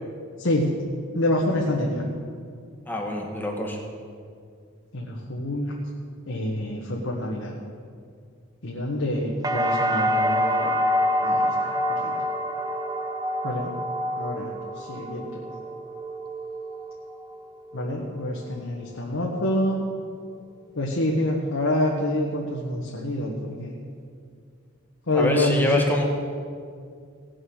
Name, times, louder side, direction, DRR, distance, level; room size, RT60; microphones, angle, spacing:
voice 1, 0.4-0.8 1.1-2.0 4.9-5.8 6.3-7.5 8.6-10.7 11.2-12.2 13.4-13.7 14.2-15.4 17.7-19.8 20.7-23.8 25.1-25.8, left 1 dB, 80° left, -2 dB, 1.4 m, -27 dB
voice 2, 2.9-3.8 25.1-26.0, left 1 dB, 10° left, 0 dB, 1.7 m, -25 dB
sound 1, 9.4-17.3 17.7-18.4, equal, 20° right, 0.8 m, -27 dB
17.5 x 6.5 x 6.4 m, 2.2 s
head